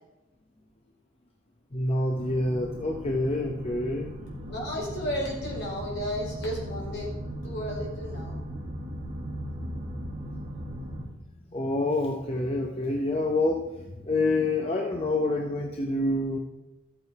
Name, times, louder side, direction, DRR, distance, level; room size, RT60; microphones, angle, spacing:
voice 1, 1.7-4.1 11.5-16.4, left 2 dB, 30° left, 2 dB, 0.8 m, -27 dB
sound 1, 2.2-11.1, equal, 40° right, 1.8 m, -37 dB
voice 2, 4.5-7.1 7.4-8.4, equal, 55° left, -3 dB, 4.3 m, -33 dB
13.0 x 8.2 x 4.7 m, 1.0 s
head